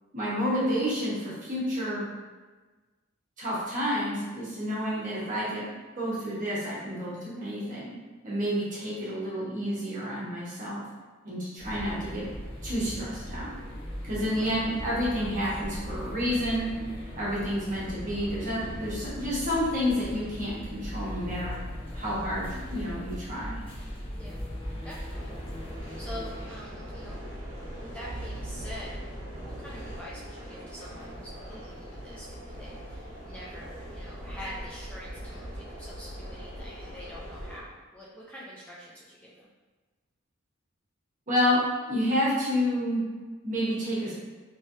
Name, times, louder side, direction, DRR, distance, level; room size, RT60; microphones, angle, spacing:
voice 1, 0.1-2.0 3.4-5.6 6.0-7.9 8.2-10.8 11.2-12.2 12.6-13.5 14.0-16.7 17.2-21.5 21.9-23.6 41.3-41.6 41.9-43.0 43.4-44.1, equal, 40° right, -8 dB, 1.2 m, -29 dB
sound 1, 11.6-26.5, equal, 30° left, 0.8 m, -38 dB
voice 2, 24.8-25.3 26.0-27.2 27.8-29.0 29.3-39.5, equal, 5° left, -7 dB, 0.4 m, -45 dB
sound 2, 25.1-37.6, equal, 65° right, 1.0 m, -41 dB
3.1 x 3.1 x 2.7 m, 1.3 s
head